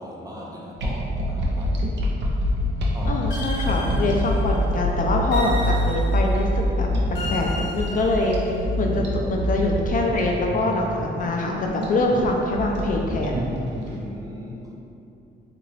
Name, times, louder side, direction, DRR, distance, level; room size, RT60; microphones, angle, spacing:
voice 1, 0.0-3.4 4.6-4.7 13.7-14.6, equal, 20° right, -3 dB, 0.5 m, -39 dB
sound 1, 0.8-13.9, equal, 65° right, 0.6 m, -25 dB
voice 2, 3.1-6.9 7.3-8.4 8.8-13.4, left 2 dB, 45° left, 0 dB, 0.4 m, -24 dB
sound 2, 3.3-4.6 5.3-6.4 7.1-8.7, left 1 dB, 60° left, 0.9 m, -35 dB
2.8 x 2.5 x 3.1 m, 2.7 s
cardioid pair, 90°, 20 cm